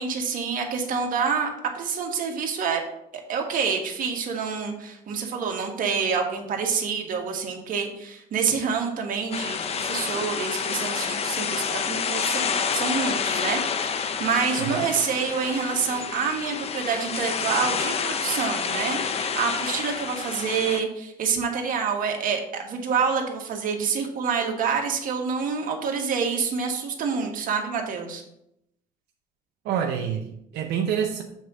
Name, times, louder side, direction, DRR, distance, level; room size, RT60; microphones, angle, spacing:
voice 1, 0.0-2.8 3.3-28.2, right 6 dB, 55° right, 2 dB, 1.4 m, -27 dB
sound 1, 9.3-20.8, left 6 dB, 35° left, 0.6 m, -28 dB
voice 2, 29.6-31.2, right 8 dB, 85° right, 3 dB, 0.7 m, -27 dB
7.2 x 3.6 x 5.9 m, 0.79 s
cardioid pair, 110°, 17 cm